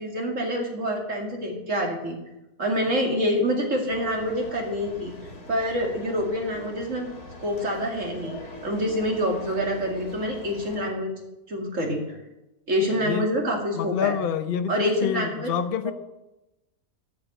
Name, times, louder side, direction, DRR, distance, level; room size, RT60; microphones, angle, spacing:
voice 1, 0.0-2.2 2.6-5.1 5.5-7.1 7.4-8.4 8.6-11.1 11.5-12.2 12.7-14.1 14.7-15.5 15.8-15.9, equal, 55° right, 1 dB, 2.8 m, -26 dB
sound 1, 3.9-10.9, left 1 dB, 80° left, 2.5 m, -42 dB
voice 2, 12.9-13.3 13.8-15.9, left 8 dB, 50° left, 9 dB, 0.7 m, -27 dB
13.0 x 6.6 x 9.1 m, 0.96 s
omnidirectional pair, 1.6 m